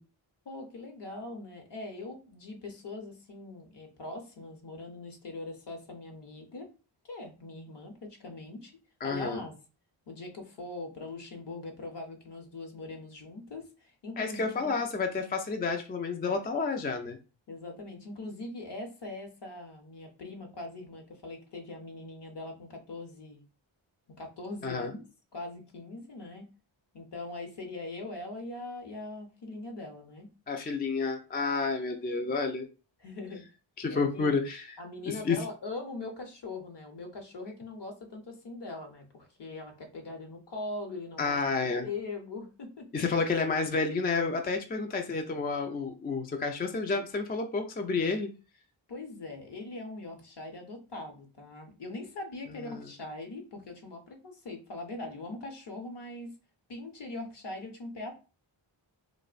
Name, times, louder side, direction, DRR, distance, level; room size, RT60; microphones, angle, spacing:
voice 1, 0.5-6.7 7.0-8.7 9.0-9.5 10.1-14.7 17.5-23.4 24.2-25.0 25.3-26.5 26.9-30.3 33.0-33.4 33.9-34.3 34.8-41.4 41.8-43.0 48.9-56.3 56.7-58.1, left 2 dB, 55° left, 4 dB, 0.8 m, -41 dB
voice 2, 9.0-9.4 14.2-17.2 24.6-24.9 30.5-32.7 33.8-34.8 35.1-35.4 41.2-41.9 42.9-48.3 52.6-52.9, left 4 dB, 20° left, 4 dB, 0.3 m, -30 dB
2.5 x 2.0 x 2.4 m, 0.33 s
cardioid pair, 50°, 50 cm